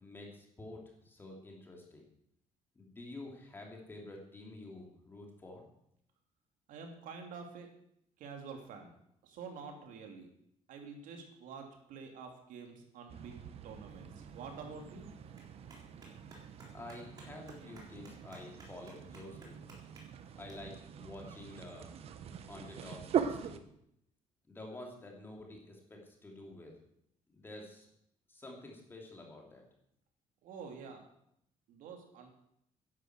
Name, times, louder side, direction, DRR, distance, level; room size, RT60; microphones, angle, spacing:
voice 1, 0.0-2.1 2.7-5.6 16.7-19.6 20.3-21.9 22.5-23.6 24.5-26.8 27.3-27.9 28.3-29.6, left 2 dB, 15° left, 0 dB, 3.1 m, -49 dB
voice 2, 6.7-7.7 8.2-8.9 9.2-10.3 10.7-13.4 13.6-15.1 30.4-31.0 31.7-32.3, right 5 dB, 80° right, 3 dB, 3.2 m, -48 dB
sound 1, 13.1-23.6, right 8 dB, 50° right, 1.1 m, -42 dB
Clapping, 13.9-20.5, right 1 dB, 30° right, 3.7 m, -60 dB
11.0 x 11.0 x 8.1 m, 0.74 s
cardioid pair, 175°, 13 cm